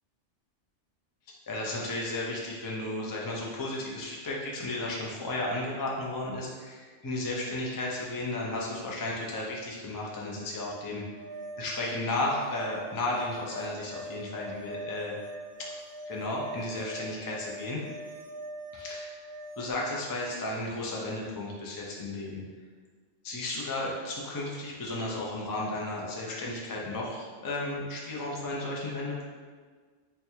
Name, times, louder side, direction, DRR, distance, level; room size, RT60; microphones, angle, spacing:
voice 1, 1.5-11.0 11.6-15.2 15.6-15.8 16.1-17.8 18.7-19.2 19.6-22.4 23.2-29.2, left 2 dB, 35° left, -3 dB, 0.3 m, -34 dB
sound 1, 11.2-19.7, right 1 dB, 75° right, 0.8 m, -42 dB
3.3 x 2.3 x 4.3 m, 1.5 s
omnidirectional pair, 1.2 m